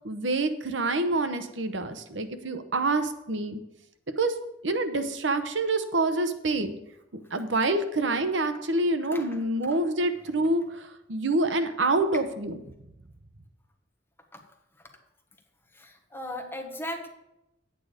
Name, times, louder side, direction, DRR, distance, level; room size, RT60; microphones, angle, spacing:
voice 1, 0.0-3.6 4.2-4.3 4.6-6.8 7.3-12.6, right 2 dB, 80° right, 9 dB, 0.9 m, -27 dB
voice 2, 15.7-17.1, left 1 dB, 10° left, 2 dB, 1.3 m, -37 dB
9.4 x 8.7 x 5.0 m, 0.85 s
head